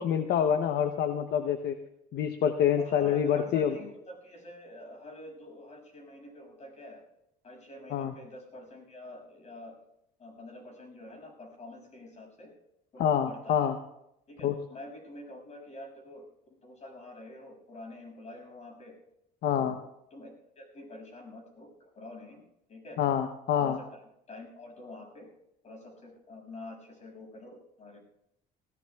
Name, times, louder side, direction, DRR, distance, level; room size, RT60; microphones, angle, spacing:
voice 1, 0.0-1.8 2.1-3.7 7.9-8.1 13.0-13.8 14.4-14.6 19.4-19.8 23.0-23.8, left 9 dB, 65° left, 8 dB, 0.8 m, -26 dB
voice 2, 2.8-7.0 7.4-9.8 10.2-12.5 12.9-13.7 14.3-16.2 16.6-18.9 19.5-19.8 20.1-22.4 22.7-23.0 23.6-23.8 24.3-25.3 25.6-28.0, left 2 dB, 40° left, 1 dB, 6.5 m, -46 dB
19.5 x 17.5 x 2.3 m, 0.82 s
cardioid pair, 110°, 17 cm